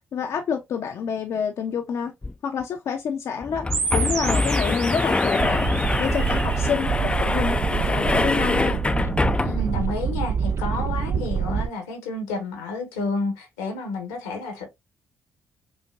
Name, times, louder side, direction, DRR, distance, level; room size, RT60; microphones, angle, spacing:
voice 1, 0.1-2.1 2.4-8.8, left 7 dB, 60° left, 0.6 m, -28 dB
sound 1, 2.2-2.3 2.6-2.7 3.4-9.8, left 2 dB, 15° left, 0.5 m, -24 dB
sound 2, 3.7-6.7, right 4 dB, 65° right, 1.3 m, -31 dB
sound 3, 5.4-11.7, right 7 dB, 50° right, 0.5 m, -26 dB
voice 2, 9.4-14.7, left 3 dB, 85° left, 1.2 m, -30 dB
5.4 x 2.2 x 2.5 m
hypercardioid pair, 50°, 6 cm